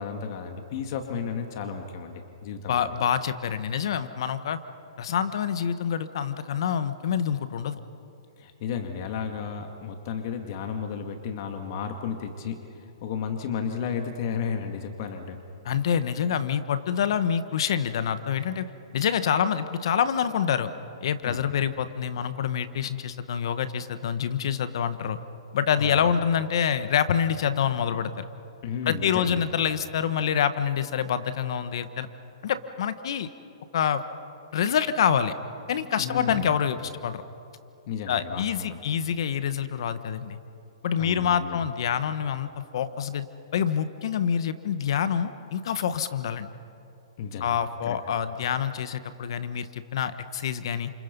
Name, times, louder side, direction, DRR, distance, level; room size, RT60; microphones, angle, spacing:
voice 1, 0.0-3.0 8.4-12.6 13.0-15.4 21.2-21.4 25.8-26.1 28.6-29.5 36.0-36.5 37.9-38.8 41.0-41.7 47.2-48.0, left 6 dB, 45° left, 5 dB, 2.3 m, -33 dB
voice 2, 2.7-4.6 5.0-7.8 15.6-18.7 18.9-20.7 21.0-25.2 25.5-28.3 28.8-32.1 32.4-33.3 33.7-34.0 34.5-35.3 35.7-37.2 38.1-40.4 40.8-43.3 43.5-46.5 47.4-50.9, left 8 dB, 60° left, 11 dB, 1.3 m, -26 dB
30.0 x 28.5 x 5.5 m, 2.7 s
hypercardioid pair, 150°, 3 cm